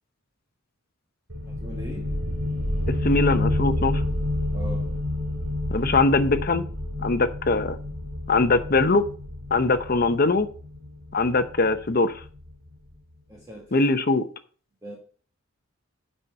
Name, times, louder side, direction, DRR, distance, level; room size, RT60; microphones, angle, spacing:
sound 1, 1.3-12.7, left 1 dB, 85° right, 2.5 m, -29 dB
voice 1, 1.4-2.2 4.5-5.0 13.3-13.9 14.8-15.0, equal, 15° right, 1.5 m, -40 dB
voice 2, 2.9-4.0 5.7-6.6 7.0-7.8 8.3-9.1 9.5-10.5 11.1-12.2 13.7-14.3, left 3 dB, 45° left, 0.8 m, -21 dB
8.1 x 5.7 x 5.7 m
head